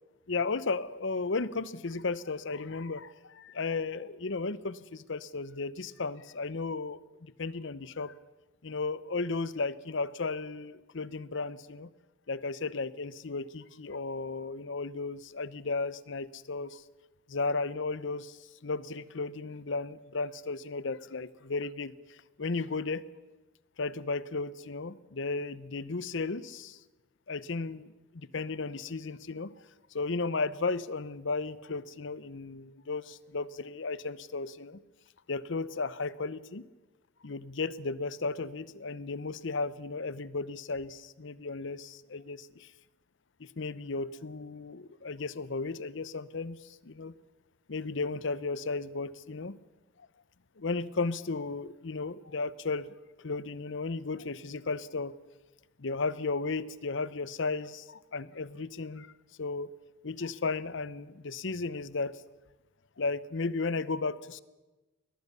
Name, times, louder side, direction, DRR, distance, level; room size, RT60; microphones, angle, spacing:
voice 1, 0.3-8.1 8.6-11.9 12.3-16.8 17.3-23.0 23.8-26.8 27.3-29.5 29.9-34.8 35.3-36.6 37.2-42.7 43.4-47.1 47.7-49.6 50.6-52.9 53.2-55.1 55.8-59.1 59.4-59.7 60.0-62.2 63.0-64.4, left 3 dB, 65° left, 17 dB, 0.8 m, -34 dB
22.0 x 19.0 x 6.8 m, 1.1 s
head